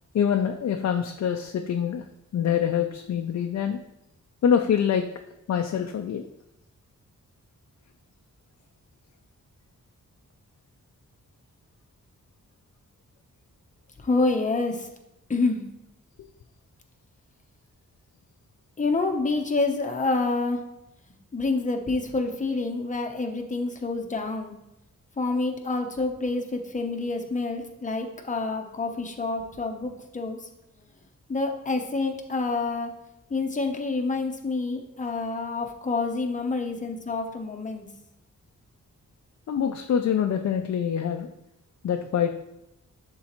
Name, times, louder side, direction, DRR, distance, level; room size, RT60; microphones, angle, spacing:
voice 1, 0.1-2.0 2.3-3.8 4.4-5.1 5.5-6.3 39.5-41.3 41.8-42.3, left 8 dB, 60° left, 5 dB, 0.4 m, -25 dB
voice 2, 14.0-14.9 15.3-15.6 18.8-20.6 21.3-24.5 25.2-30.4 31.3-32.9 33.3-37.9, left 3 dB, 25° left, 3 dB, 0.7 m, -27 dB
11.0 x 3.8 x 3.0 m, 0.88 s
wide cardioid pair, 165°, 31 cm